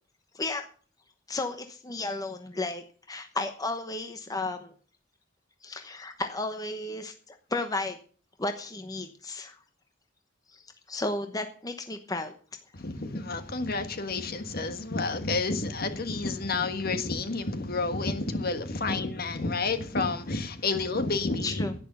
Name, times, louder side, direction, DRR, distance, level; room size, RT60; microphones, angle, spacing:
voice 1, 0.3-0.7 1.3-4.7 5.6-8.0 8.4-9.5 10.5-10.6 10.9-12.3 18.9-19.0 21.4-21.7, left 2 dB, 20° left, 7 dB, 1.0 m, -33 dB
voice 2, 12.7-21.8, left 3 dB, 50° left, 9 dB, 1.5 m, -30 dB
11.0 x 10.0 x 6.9 m, 0.42 s
head